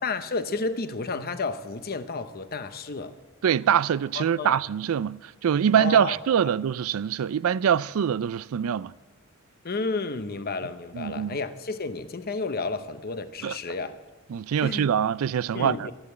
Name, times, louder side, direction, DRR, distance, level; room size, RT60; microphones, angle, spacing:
voice 1, 0.0-3.2 4.1-4.6 5.7-6.2 9.6-14.0 14.6-14.9 15.5-15.9, left 3 dB, 45° left, 0.9 m, -31 dB
voice 2, 3.4-8.9 10.9-11.4 13.4-13.6 14.3-15.9, right 8 dB, 75° right, 0.4 m, -24 dB
13.0 x 11.5 x 8.0 m
head